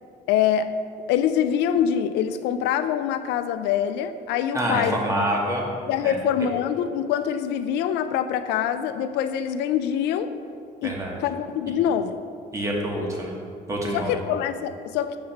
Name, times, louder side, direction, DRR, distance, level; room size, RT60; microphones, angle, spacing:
voice 1, 0.3-0.7 1.1-5.0 5.9-10.3 10.8-10.9 11.2-12.2 13.9-15.2, left 9 dB, 85° left, 11 dB, 0.4 m, -24 dB
voice 2, 4.5-5.7 6.0-6.2 10.8-11.2 12.5-13.4 13.7-14.2, right 1 dB, 20° right, -1 dB, 1.2 m, -26 dB
7.3 x 3.2 x 5.8 m, 2.3 s
cardioid pair, 110°, 17 cm